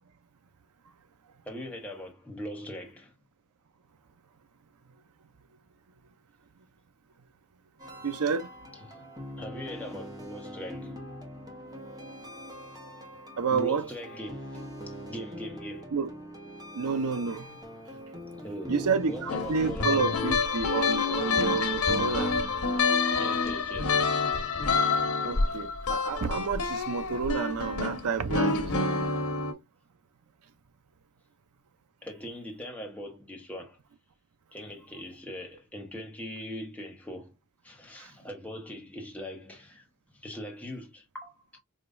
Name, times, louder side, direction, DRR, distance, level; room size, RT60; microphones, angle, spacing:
voice 1, 1.4-3.1 8.9-9.0 9.4-10.9 13.5-15.9 18.4-20.3 23.2-24.2 32.0-33.8 34.5-37.3 37.6-39.8 40.1-41.6, equal, 5° left, 1.2 m, -41 dB
sound 1, 7.8-20.4, equal, 15° right, 1.2 m, -43 dB
voice 2, 8.0-8.5 13.4-13.9 15.9-16.1 16.7-17.6 18.7-22.4 25.2-28.9 38.0-38.1, right 5 dB, 85° right, 0.6 m, -30 dB
sound 2, 19.3-29.5, left 4 dB, 85° left, 1.1 m, -27 dB
5.1 x 3.0 x 2.5 m
head